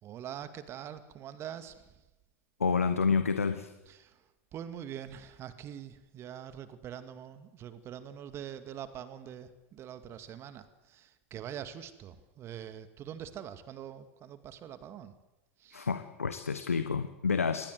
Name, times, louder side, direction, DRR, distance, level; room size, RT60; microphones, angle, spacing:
voice 1, 0.0-1.9 3.9-4.2 4.5-15.1 15.6-15.9, right 9 dB, 35° right, 11 dB, 2.1 m, -44 dB
voice 2, 2.6-3.7 15.7-17.7, left 5 dB, 85° left, 10 dB, 1.4 m, -29 dB
26.5 x 20.5 x 8.1 m, 0.99 s
figure-of-eight pair, 90°, 7 cm